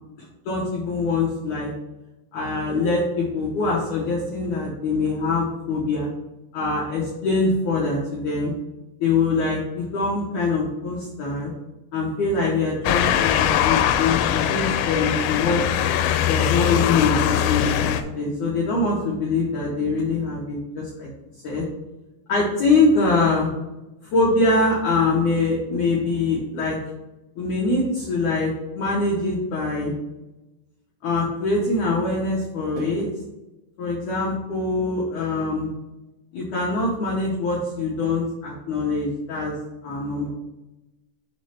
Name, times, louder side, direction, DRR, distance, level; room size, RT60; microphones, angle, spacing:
voice 1, 0.5-1.7 2.3-6.1 6.5-8.5 9.0-11.5 11.9-15.6 16.3-21.1 21.4-21.6 22.3-23.5 24.1-26.8 27.4-28.5 28.8-29.9 31.0-33.1 33.8-35.7 36.3-39.6 39.8-40.3, left 3 dB, 70° left, -5 dB, 1.9 m, -23 dB
Motor vehicle (road) / Siren, 12.9-18.0, left 10 dB, 85° left, 2.8 m, -21 dB
6.8 x 3.2 x 5.5 m, 1.0 s
omnidirectional pair, 4.9 m